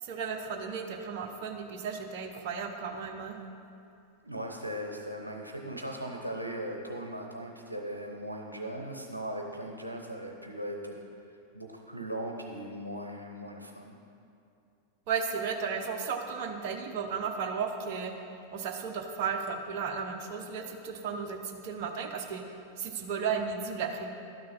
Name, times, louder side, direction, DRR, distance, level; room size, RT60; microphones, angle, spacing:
voice 1, 0.0-3.4 15.1-18.1 18.5-24.1, right 6 dB, 45° right, 3 dB, 0.7 m, -34 dB
voice 2, 4.2-11.1 11.5-13.9, right 1 dB, 85° right, 1 dB, 0.7 m, -38 dB
12.0 x 6.4 x 4.2 m, 2.6 s
figure-of-eight pair, 90°, 0 cm